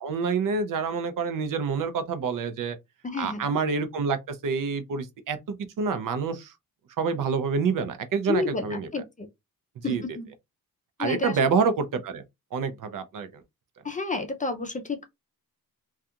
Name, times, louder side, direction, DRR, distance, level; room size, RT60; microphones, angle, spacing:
voice 1, 0.0-2.8 3.2-6.5 7.0-8.9 9.9-10.0 11.0-12.2 12.5-13.4, right 5 dB, 60° right, 0.6 m, -27 dB
voice 2, 3.0-3.4 8.3-9.3 9.8-10.3 11.0-11.4 13.8-15.1, left 4 dB, 20° left, 0.5 m, -30 dB
2.4 x 2.3 x 2.7 m
cardioid pair, 95°, 36 cm